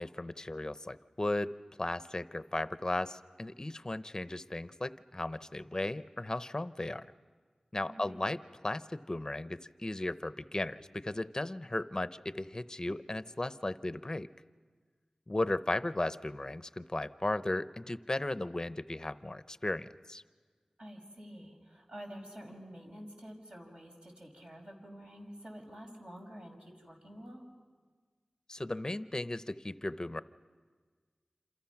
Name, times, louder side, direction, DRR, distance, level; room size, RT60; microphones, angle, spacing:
voice 1, 0.0-1.5 1.8-7.1 7.7-14.3 15.3-20.2 28.5-30.2, left 2 dB, 30° left, 13 dB, 0.7 m, -36 dB
voice 2, 7.9-8.2 20.8-27.4, equal, 55° right, 0 dB, 5.4 m, -49 dB
27.5 x 27.5 x 5.9 m, 1.5 s
wide cardioid pair, 55°, 2 cm